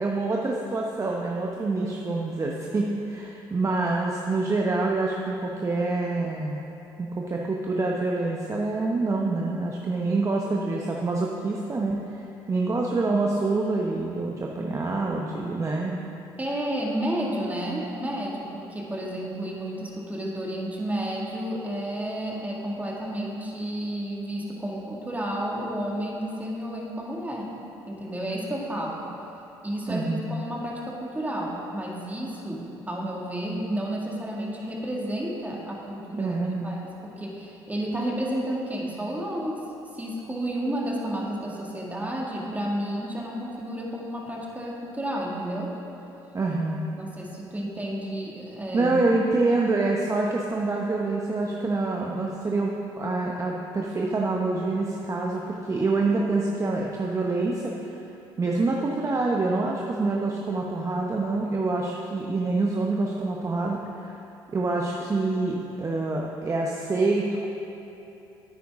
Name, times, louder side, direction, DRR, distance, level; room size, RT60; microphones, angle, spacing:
voice 1, 0.0-6.6 7.0-16.0 29.9-30.3 36.1-36.8 46.3-46.9 48.7-58.0 58.4-64.2 64.5-67.5, right 3 dB, 30° right, -1 dB, 0.8 m, -26 dB
voice 2, 16.4-27.5 27.9-29.1 29.6-39.6 39.9-45.7 47.0-48.9, right 1 dB, 15° right, -3 dB, 2.0 m, -31 dB
9.7 x 9.1 x 3.6 m, 3.0 s
supercardioid pair, 70°, 10 cm